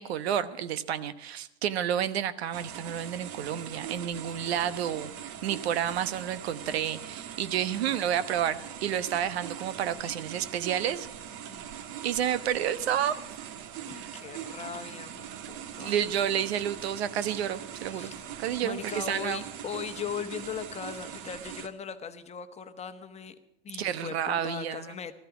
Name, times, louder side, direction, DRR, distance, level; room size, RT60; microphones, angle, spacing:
voice 1, 0.0-11.1 12.0-13.2 13.9-14.1 15.8-18.1 18.4-19.4 23.8-24.9, right 9 dB, 75° right, 14 dB, 1.1 m, -30 dB
sound 1, 2.5-21.7, right 9 dB, 50° right, 1.4 m, -42 dB
voice 2, 4.4-5.0 7.9-8.1 11.5-11.7 13.9-16.0 17.9-18.3 18.6-23.3 23.6-25.1, left 7 dB, 20° left, 8 dB, 1.1 m, -39 dB
15.0 x 13.5 x 5.9 m, 0.86 s
hypercardioid pair, 120°, 32 cm